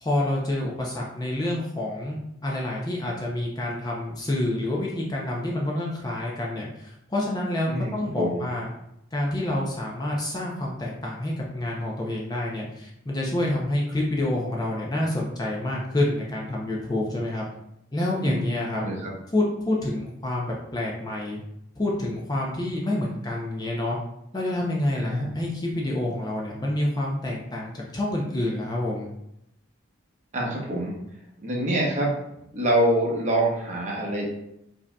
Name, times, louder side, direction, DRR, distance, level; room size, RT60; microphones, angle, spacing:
voice 1, 0.0-8.7 9.1-17.5 17.9-18.8 19.3-21.4 21.8-24.0 24.3-29.1, left 1 dB, 20° left, -2 dB, 0.5 m, -28 dB
voice 2, 7.7-8.4 18.2-18.5 18.7-19.1 25.0-25.3 30.3-31.0 31.4-32.2 32.5-34.3, right 1 dB, 35° right, -3 dB, 0.9 m, -25 dB
5.0 x 2.7 x 2.2 m, 0.80 s
head